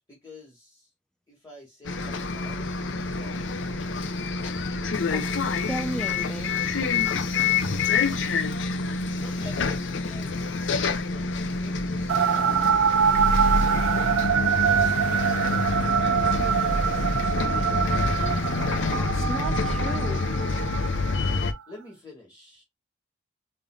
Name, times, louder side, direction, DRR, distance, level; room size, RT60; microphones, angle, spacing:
voice 1, 0.1-0.9 1.3-3.9 7.4-8.0 9.1-13.1 13.9-14.9 15.8-17.9 21.7-22.6, left 1 dB, 20° left, 1.6 m, -49 dB
Bus, 1.8-21.5, left 4 dB, 65° left, 0.6 m, -27 dB
voice 2, 5.7-6.5 18.9-20.3, equal, 5° left, 0.5 m, -34 dB
sound 1, 12.1-21.5, right 8 dB, 90° right, 0.3 m, -25 dB
5.3 x 2.6 x 2.4 m
head